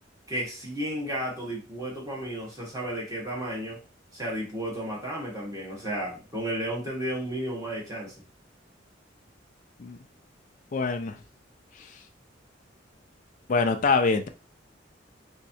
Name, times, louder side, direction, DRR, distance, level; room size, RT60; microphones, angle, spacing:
voice 1, 0.3-3.8 4.1-8.1, right 1 dB, 20° right, -4 dB, 1.5 m, -33 dB
voice 2, 10.7-11.1 13.5-14.3, left 4 dB, 45° left, 6 dB, 0.4 m, -24 dB
3.5 x 3.1 x 2.8 m, 0.31 s
head